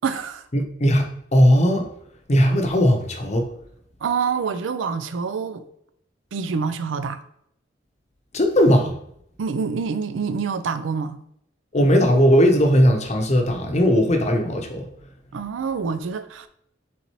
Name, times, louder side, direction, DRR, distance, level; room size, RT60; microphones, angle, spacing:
voice 1, 0.0-0.5 4.0-5.6 6.3-7.2 9.4-11.2 15.3-16.5, right 5 dB, 85° right, 0.4 m, -26 dB
voice 2, 0.5-1.9 2.3-3.5 8.3-8.9 11.7-14.9, equal, 35° left, 0.7 m, -18 dB
4.2 x 3.9 x 3.0 m
head